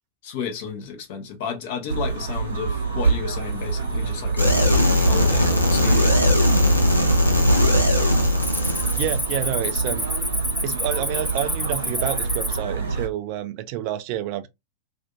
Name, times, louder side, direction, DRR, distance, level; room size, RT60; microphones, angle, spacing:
voice 1, 0.2-6.2, left 6 dB, 50° left, 0.7 m, -33 dB
sound 1, 1.9-13.1, right 4 dB, 75° right, 0.7 m, -27 dB
Cricket, 3.6-4.0 4.5-4.9 5.5-5.6 6.2-6.8 7.1-7.4 7.7-12.6, left 1 dB, ahead, 0.7 m, -29 dB
sound 2, 4.4-9.2, left 1 dB, 85° left, 0.6 m, -19 dB
voice 2, 9.0-10.1 10.6-14.5, right 13 dB, 45° right, 0.4 m, -29 dB
2.5 x 2.5 x 2.4 m
figure-of-eight pair, 90°, 0 cm